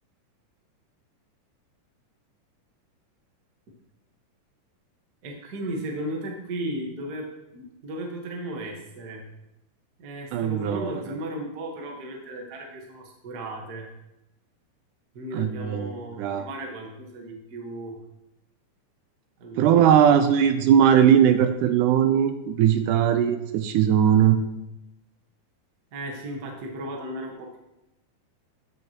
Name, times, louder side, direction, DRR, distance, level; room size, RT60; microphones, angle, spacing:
voice 1, 5.2-9.2 10.0-13.9 15.1-18.0 19.4-20.3 20.6-20.7 25.9-27.6, right 1 dB, 55° right, 1 dB, 1.0 m, -35 dB
voice 2, 10.3-11.0 15.3-16.4 19.6-24.4, right 9 dB, 80° right, 9 dB, 2.0 m, -19 dB
13.0 x 6.2 x 2.9 m, 0.90 s
omnidirectional pair, 3.8 m